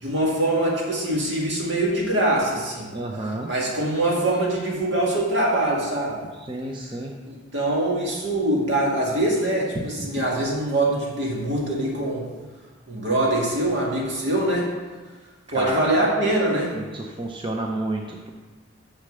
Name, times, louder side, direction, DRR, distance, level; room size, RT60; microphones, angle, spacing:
voice 1, 0.0-2.9 3.4-6.2 7.2-12.3 12.9-14.7 15.5-16.7, right 1 dB, 65° right, -3 dB, 2.4 m, -23 dB
voice 2, 2.9-3.5 6.4-7.1 15.5-15.8 16.7-18.3, right 2 dB, 25° right, 0 dB, 0.7 m, -30 dB
6.7 x 6.4 x 6.7 m, 1.3 s
head